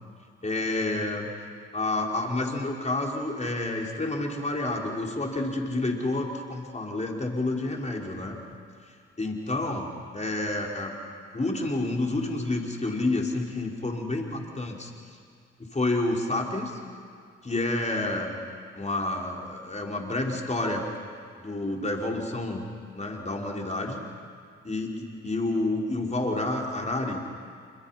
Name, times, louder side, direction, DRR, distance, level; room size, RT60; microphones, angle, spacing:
voice 1, 0.4-1.3 1.7-8.4 9.2-11.0 11.3-14.9 15.6-16.8 17.4-18.4 18.7-20.9 21.4-22.7 22.9-24.0 24.6-27.2, left 2 dB, 20° left, 0 dB, 4.7 m, -29 dB
28.0 x 24.5 x 5.9 m, 2.3 s
figure-of-eight pair, 45°, 33 cm